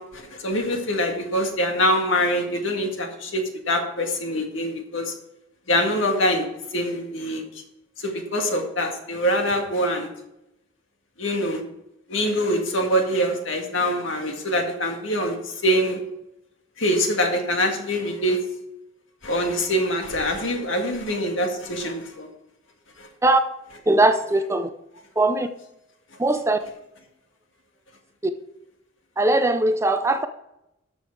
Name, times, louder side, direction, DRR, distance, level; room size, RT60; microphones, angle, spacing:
voice 1, 0.0-5.1 5.7-6.5 6.7-7.4 8.0-10.1 11.2-11.6 12.1-16.0 16.8-18.4 19.2-22.3 23.0-23.1, equal, 70° left, 3 dB, 1.9 m, -24 dB
voice 2, 23.9-24.7 25.2-25.5 26.2-26.6 28.2-28.3 29.2-30.3, right 2 dB, 15° right, 9 dB, 0.5 m, -20 dB
12.0 x 6.3 x 4.7 m, 0.85 s
head